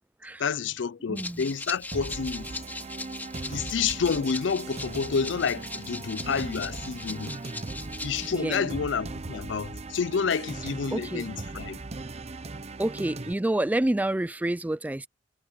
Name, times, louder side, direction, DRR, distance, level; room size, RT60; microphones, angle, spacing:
voice 1, 0.4-2.5 3.5-7.4 8.0-11.8, left 6 dB, 70° left, 0.5 m, -29 dB
Rattle (instrument), 1.1-8.3, left 2 dB, 10° left, 2.6 m, -39 dB
voice 2, 1.1-1.4 8.3-8.7 10.9-11.3 12.8-15.1, right 1 dB, 10° right, 0.3 m, -28 dB
sound 1, 1.9-13.3, right 3 dB, 35° right, 0.8 m, -38 dB
head